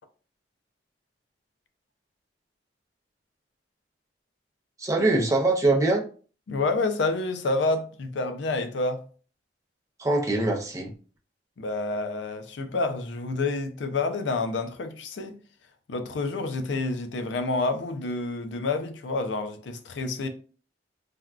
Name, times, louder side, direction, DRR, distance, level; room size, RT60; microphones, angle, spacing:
voice 1, 4.8-6.1 10.0-10.9, right 2 dB, 20° right, 0.5 m, -23 dB
voice 2, 6.5-9.0 11.6-15.4 15.9-20.3, left 3 dB, 80° left, 0.4 m, -28 dB
3.4 x 2.2 x 2.4 m
head